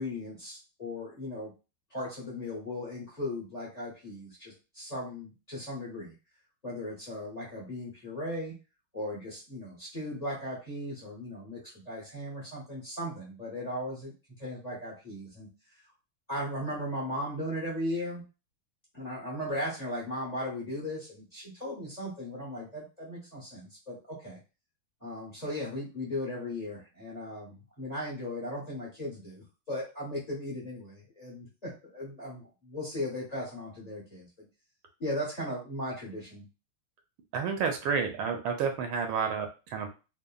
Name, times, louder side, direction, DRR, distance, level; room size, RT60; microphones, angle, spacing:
voice 1, 0.0-1.5 1.9-6.1 6.6-8.5 8.9-14.1 14.4-15.5 16.3-18.2 18.9-24.4 25.0-34.5 35.0-36.4, left 1 dB, 40° left, -4 dB, 0.6 m, -37 dB
voice 2, 37.3-39.9, right 6 dB, 85° right, 4 dB, 1.4 m, -30 dB
3.6 x 2.0 x 2.2 m, 0.31 s
omnidirectional pair, 2.2 m